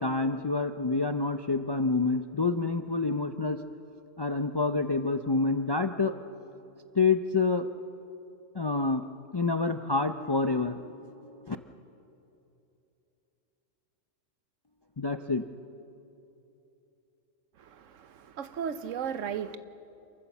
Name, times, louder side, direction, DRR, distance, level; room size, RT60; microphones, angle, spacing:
voice 1, 0.0-3.6 4.2-6.1 7.0-7.7 8.5-9.0 9.3-11.6 15.0-15.4, left 3 dB, 45° left, 8 dB, 0.3 m, -28 dB
voice 2, 18.4-19.6, right 7 dB, 85° right, 12 dB, 1.2 m, -34 dB
27.5 x 14.0 x 7.2 m, 2.8 s
omnidirectional pair, 1.3 m